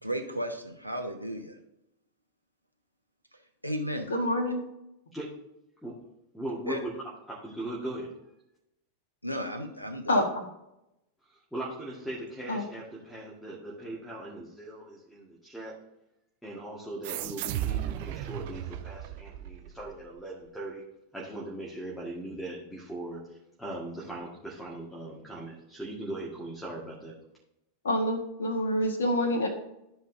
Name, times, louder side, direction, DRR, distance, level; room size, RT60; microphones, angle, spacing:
voice 1, 0.0-1.6 3.6-4.1 6.7-6.8 9.2-10.2, equal, 90° left, 6 dB, 1.0 m, -34 dB
voice 2, 4.1-4.6 10.1-10.2 12.5-12.6 27.8-29.5, left 1 dB, 70° left, 3 dB, 1.7 m, -26 dB
voice 3, 6.3-8.2 11.5-15.7 16.4-20.8 21.1-27.2, right 1 dB, ahead, -5 dB, 1.8 m, -39 dB
sound 1, 17.0-20.1, right 13 dB, 50° right, 0.5 m, -35 dB
13.5 x 5.2 x 2.8 m, 0.85 s
figure-of-eight pair, 90°, 0 cm